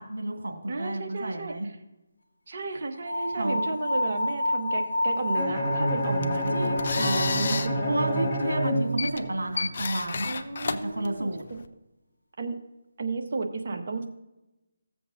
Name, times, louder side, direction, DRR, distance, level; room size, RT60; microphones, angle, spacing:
voice 1, 0.0-1.7 3.3-3.6 6.3-7.5 7.9-10.3 10.7-11.4, right 1 dB, 80° right, 1 dB, 2.1 m, -31 dB
voice 2, 0.7-1.5 2.5-8.3 10.2-11.6 12.4-12.6 13.0-14.1, right 3 dB, 50° right, 3 dB, 1.2 m, -33 dB
sound 1, 3.0-8.1, left 2 dB, 75° left, 1.5 m, -30 dB
Bowed string instrument, 5.3-9.5, equal, 20° left, 3.5 m, -28 dB
sound 2, 6.0-11.7, left 4 dB, 50° left, 0.6 m, -33 dB
15.5 x 7.6 x 2.6 m, 0.98 s
figure-of-eight pair, 160°, 0 cm